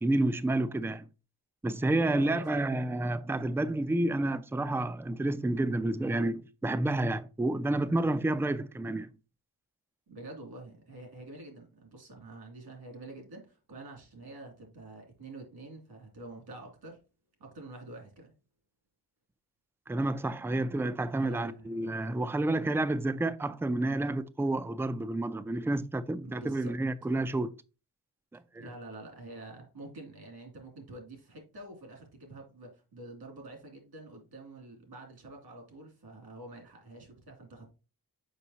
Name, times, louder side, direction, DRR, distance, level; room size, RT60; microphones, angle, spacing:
voice 1, 0.0-1.1 1.6-9.1 19.9-27.5 28.3-28.7, right 2 dB, 5° right, 0.3 m, -30 dB
voice 2, 2.0-2.7 10.1-17.0 17.4-18.3 21.2-22.2 26.2-26.8 28.6-37.7, right 2 dB, 75° right, 2.6 m, -47 dB
6.9 x 5.3 x 2.8 m
wide cardioid pair, 110°, 39 cm